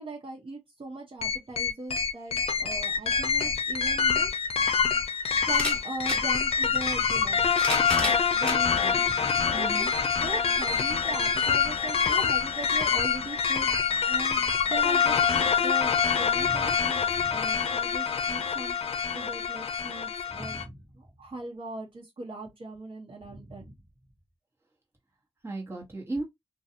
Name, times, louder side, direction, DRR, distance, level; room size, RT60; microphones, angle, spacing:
voice 1, 0.0-4.3 5.5-7.4 7.7-9.8 10.2-18.8 19.1-20.6 20.9-23.7, right 2 dB, 55° right, 1.0 m, -40 dB
sound 1, 1.2-20.6, left 6 dB, 70° left, 0.4 m, -26 dB
sound 2, 4.0-4.1 5.4-6.2 7.2-8.6 9.4-9.5 10.7-10.8, equal, 10° left, 1.2 m, -32 dB
voice 2, 9.1-9.9 16.4-16.7 17.1-17.3 20.3-20.8 23.2-23.5 25.4-26.2, right 2 dB, 25° right, 1.2 m, -37 dB
2.5 x 2.3 x 2.7 m
cardioid pair, 75°, 11 cm